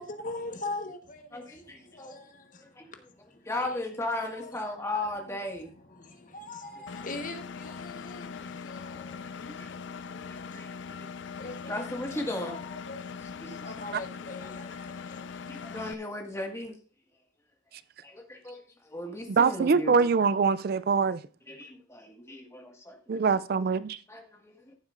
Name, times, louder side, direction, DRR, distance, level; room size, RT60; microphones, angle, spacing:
voice 1, 0.0-3.0 3.3-3.8 4.3-4.8 5.1-5.4 5.9-10.8 11.4-11.8 12.1-15.6, left 2 dB, 45° left, 1.3 m, -43 dB
voice 2, 1.3-2.2 2.6-2.9 3.4-5.7 6.7-6.9 8.1-11.1 11.6-12.6 13.2-13.7 14.7-14.8 15.5-16.8 18.0-19.9 21.5-23.6 24.1-24.7, left 1 dB, 15° left, 1.8 m, -37 dB
Engine, 6.9-15.9, left 5 dB, 70° left, 0.4 m, -41 dB
voice 3, 19.3-21.2 23.1-24.0, right 5 dB, 50° right, 0.4 m, -24 dB
14.5 x 7.9 x 2.5 m
head